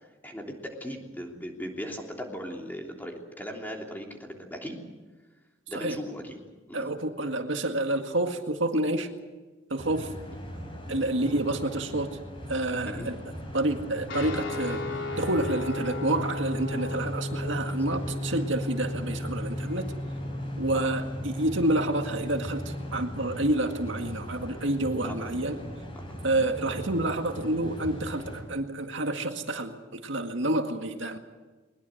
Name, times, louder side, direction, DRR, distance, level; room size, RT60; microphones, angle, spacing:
voice 1, 0.2-4.8 5.7-6.4 6.7-6.9 12.8-13.1 20.7-20.9 25.1-25.3 25.9-26.2, equal, 10° left, 1 dB, 3.2 m, -38 dB
voice 2, 6.7-9.1 9.7-10.1 10.9-12.1 12.5-13.2 13.5-14.8 15.2-19.8 20.6-25.6 26.2-31.2, right 1 dB, 70° right, 5 dB, 1.9 m, -28 dB
sound 1, 9.8-28.4, equal, 25° left, 6.0 m, -40 dB
sound 2, 14.1-23.0, left 1 dB, 70° left, 4.0 m, -34 dB
21.5 x 21.5 x 7.9 m, 1.2 s
head